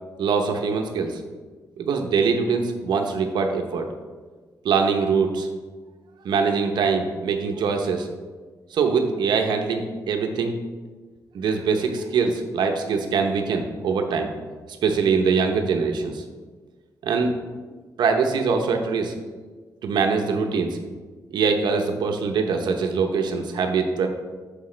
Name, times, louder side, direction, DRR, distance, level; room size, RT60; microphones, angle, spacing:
voice 1, 0.2-1.2 1.8-3.9 4.6-5.5 6.2-8.1 8.7-10.6 11.3-14.3 14.8-16.2 17.0-17.3 18.0-19.1 19.8-20.8 21.3-24.1, right 5 dB, 85° right, 4 dB, 0.8 m, -23 dB
9.6 x 6.8 x 3.3 m, 1.4 s
wide cardioid pair, 150°, 7 cm